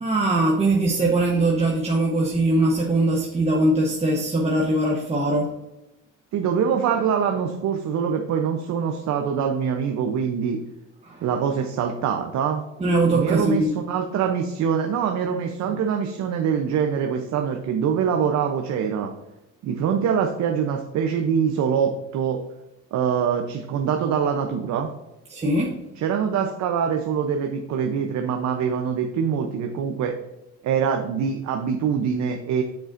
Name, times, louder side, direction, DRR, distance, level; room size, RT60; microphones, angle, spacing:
voice 1, 0.0-5.5 11.1-11.2 12.8-13.7 25.3-25.8, right 2 dB, 20° right, -2 dB, 1.1 m, -21 dB
voice 2, 6.3-10.6 11.2-12.6 13.1-19.1 19.6-22.4 22.9-24.9 26.0-30.2 30.6-32.6, right 7 dB, 60° right, 5 dB, 0.8 m, -24 dB
7.6 x 7.1 x 2.6 m, 0.93 s
cardioid pair, 110°, 32 cm